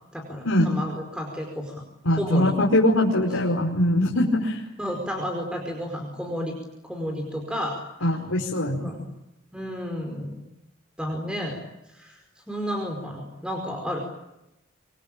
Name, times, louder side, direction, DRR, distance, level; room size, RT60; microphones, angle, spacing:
voice 1, 0.1-1.7 2.1-2.5 4.8-6.5 6.8-8.2 8.8-9.0 9.5-10.4 11.0-11.6 11.9-12.2 12.5-14.0, equal, 5° right, 2 dB, 5.0 m, -31 dB
voice 2, 2.0-4.6 8.0-8.9, left 1 dB, 90° left, -2 dB, 5.0 m, -22 dB
27.0 x 23.5 x 8.9 m, 0.89 s
head